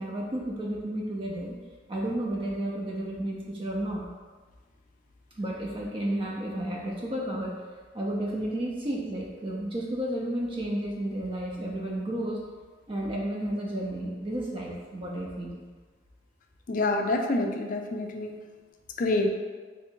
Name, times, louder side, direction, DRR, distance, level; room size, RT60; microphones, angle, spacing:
voice 1, 0.0-1.6 1.9-4.1 5.4-7.6 7.9-12.4 12.9-15.6, right 1 dB, 30° right, -2 dB, 0.5 m, -32 dB
voice 2, 16.7-18.4 19.0-19.3, left 2 dB, 45° left, 3 dB, 0.4 m, -27 dB
3.3 x 2.5 x 4.4 m, 1.4 s
head